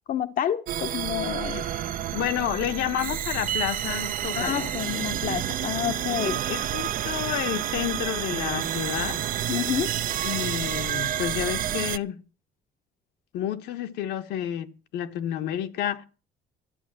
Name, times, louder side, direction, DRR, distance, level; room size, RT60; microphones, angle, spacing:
voice 1, 0.1-1.6 4.3-6.4 9.5-9.9, left 10 dB, 55° left, 0.8 m, -29 dB
sound 1, 0.7-12.0, right 11 dB, 55° right, 0.6 m, -29 dB
voice 2, 1.4-1.8 2.1-4.7 6.2-9.2 10.2-12.2 13.3-16.1, left 11 dB, 80° left, 1.3 m, -30 dB
13.0 x 8.5 x 7.4 m
cardioid pair, 110°, 17 cm